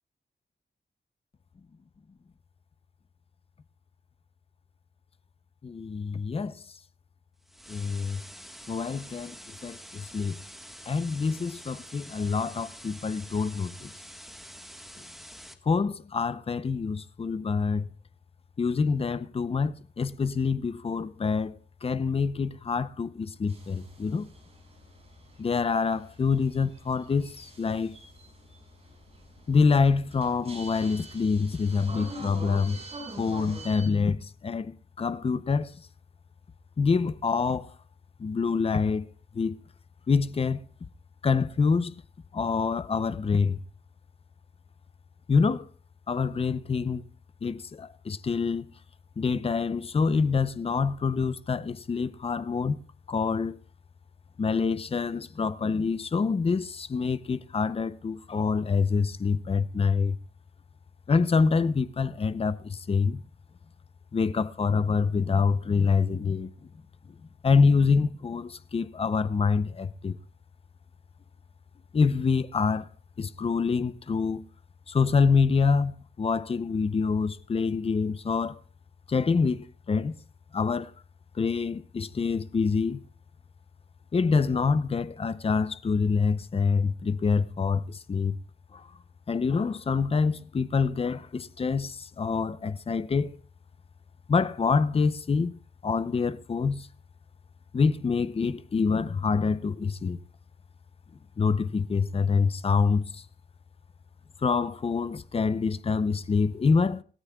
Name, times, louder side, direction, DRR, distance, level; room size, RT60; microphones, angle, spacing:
voice 1, 5.6-6.6 7.7-8.2 8.7-9.4 9.6-10.4 10.9-13.9 15.6-17.9 18.6-24.3 25.4-28.0 29.5-32.8 33.2-35.8 36.8-37.7 38.2-39.1 39.3-39.6 40.1-40.6 41.2-41.9 42.3-43.6 45.3-45.7 46.1-47.0 47.4-48.7 49.2-52.8 53.1-53.6 54.4-60.2 61.1-63.2 64.1-66.5 67.4-70.2 71.9-72.9 73.2-74.4 74.9-78.6 79.1-80.1 80.5-80.9 81.3-83.0 84.1-88.4 88.7-88.9 89.3-93.4 94.3-95.6 95.8-96.9 97.7-100.2 101.4-103.2 104.4-107.0, left 5 dB, 30° left, 0.6 m, -26 dB
sound 1, 7.5-15.5, equal, ahead, 1.4 m, -47 dB
sound 2, 23.5-33.9, right 2 dB, 35° right, 5.9 m, -46 dB
27.0 x 13.5 x 2.3 m
wide cardioid pair, 170°, 18 cm